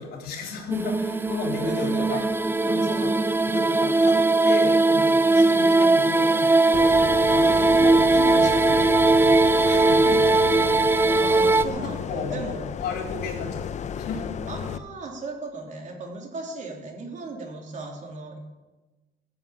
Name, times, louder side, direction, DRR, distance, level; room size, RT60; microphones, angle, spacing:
voice 1, 0.0-2.2 2.6-3.2 3.4-4.2 4.4-10.2 10.9-11.1 12.1-13.6 14.0-14.2, left 4 dB, 70° left, 1 dB, 3.7 m, -34 dB
sound 1, 0.7-11.6, right 2 dB, 15° right, 0.6 m, -19 dB
voice 2, 1.6-2.2 2.6-2.9 5.3-5.6 7.4-7.7 11.0-12.7 14.5-18.4, right 3 dB, 45° right, 1 dB, 3.4 m, -37 dB
sound 2, 6.7-14.8, left 8 dB, 45° left, 0.7 m, -33 dB
16.5 x 7.8 x 8.5 m, 1.2 s
cardioid pair, 110°, 17 cm